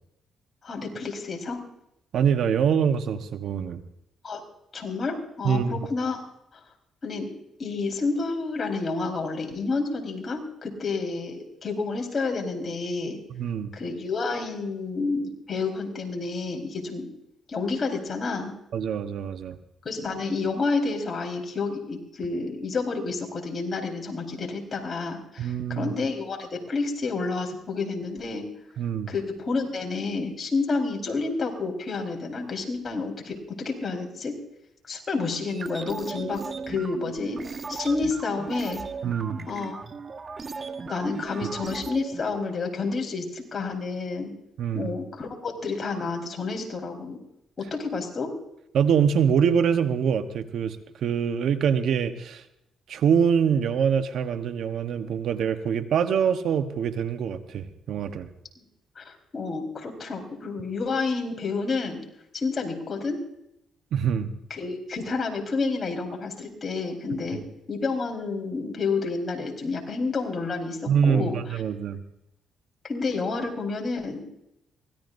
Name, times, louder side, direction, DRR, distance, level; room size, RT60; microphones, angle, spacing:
voice 1, 0.6-1.6 4.2-4.4 4.7-6.3 6.5-6.6 7.0-7.3 7.6-13.2 13.7-17.1 17.5-18.5 19.8-28.4 29.1-34.4 34.9-36.4 36.7-37.4 37.7-38.8 39.5-39.8 40.9-44.3 44.7-47.2 47.6-48.3 59.0-62.0 62.3-63.2 64.5-67.4 67.7-71.4 72.8-74.2, left 4 dB, 40° left, 1 dB, 4.4 m, -29 dB
voice 2, 2.1-3.8 5.4-5.8 13.3-13.7 18.7-19.6 25.4-25.9 28.8-29.1 39.0-39.4 44.6-44.9 48.7-52.4 52.9-58.3 63.9-64.3 67.3-67.4 70.9-72.0, right 7 dB, 70° right, 9 dB, 1.1 m, -24 dB
sound 1, 35.5-42.3, right 4 dB, 35° right, 1.2 m, -37 dB
24.0 x 17.5 x 2.7 m, 0.82 s
cardioid pair, 90°, 0 cm